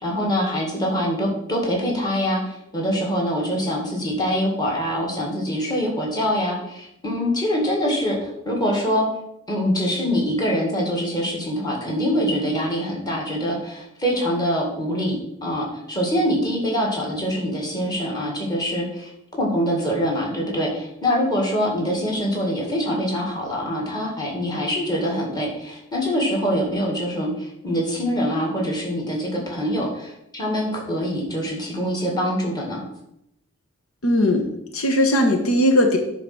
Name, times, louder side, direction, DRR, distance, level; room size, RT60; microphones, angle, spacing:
voice 1, 0.0-9.1 9.5-32.8, equal, 20° left, -1 dB, 2.1 m, -24 dB
voice 2, 34.0-34.4 34.7-36.0, left 1 dB, 80° left, 4 dB, 1.2 m, -18 dB
9.7 x 3.9 x 6.1 m, 0.81 s
head